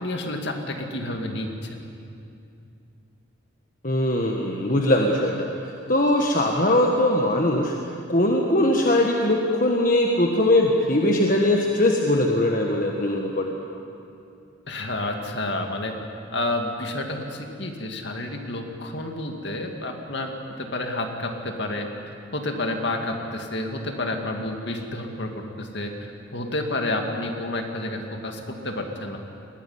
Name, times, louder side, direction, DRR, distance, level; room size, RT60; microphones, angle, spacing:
voice 1, 0.0-1.7 14.7-15.9 16.3-21.9 22.3-29.2, left 1 dB, 55° left, 3 dB, 2.3 m, -30 dB
voice 2, 3.8-13.6, left 1 dB, 40° left, 1 dB, 1.5 m, -21 dB
21.5 x 18.0 x 9.7 m, 2.6 s
head